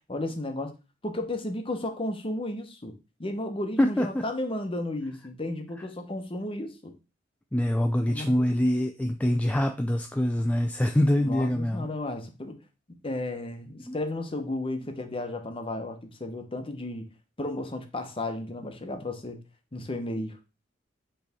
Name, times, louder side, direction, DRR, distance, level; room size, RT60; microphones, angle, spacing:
voice 1, 0.1-0.7 1.0-2.9 3.2-6.9 8.1-8.4 11.2-12.6 13.0-17.1 17.4-19.4 19.7-20.4, left 1 dB, 30° left, 6 dB, 1.0 m, -33 dB
voice 2, 3.8-4.2 7.5-11.9 13.9-14.0, left 1 dB, 5° left, 5 dB, 0.3 m, -25 dB
8.1 x 3.4 x 3.5 m, 0.29 s
head